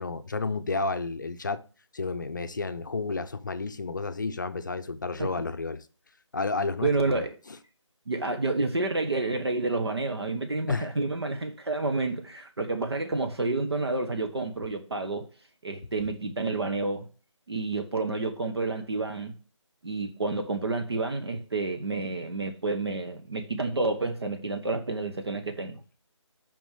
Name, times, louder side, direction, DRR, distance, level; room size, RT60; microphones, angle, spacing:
voice 1, 0.0-1.6 1.9-5.8 6.3-7.2 10.7-10.9, left 3 dB, 40° left, 0.6 m, -31 dB
voice 2, 6.8-7.3 8.1-15.2 15.6-17.1 17.5-19.4 19.8-25.8, right 3 dB, 55° right, 1.1 m, -29 dB
6.0 x 5.3 x 6.6 m
figure-of-eight pair, 165°, 16 cm